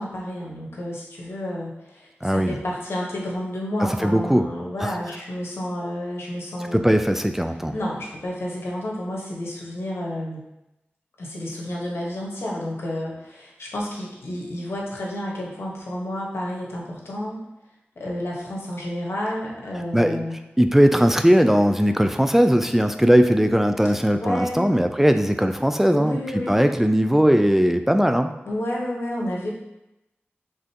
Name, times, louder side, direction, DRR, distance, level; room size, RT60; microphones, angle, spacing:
voice 1, 0.0-6.8 7.7-10.4 11.2-17.4 18.0-20.4 24.2-24.6 25.9-26.6 28.5-29.5, left 1 dB, 80° left, -3 dB, 1.2 m, -30 dB
voice 2, 2.2-2.5 4.0-4.5 4.8-4.9 6.7-7.7 19.9-20.2 20.6-26.2 26.5-28.3, equal, 5° right, 7 dB, 0.3 m, -19 dB
5.1 x 3.6 x 2.9 m, 0.92 s
cardioid pair, 50°, 4 cm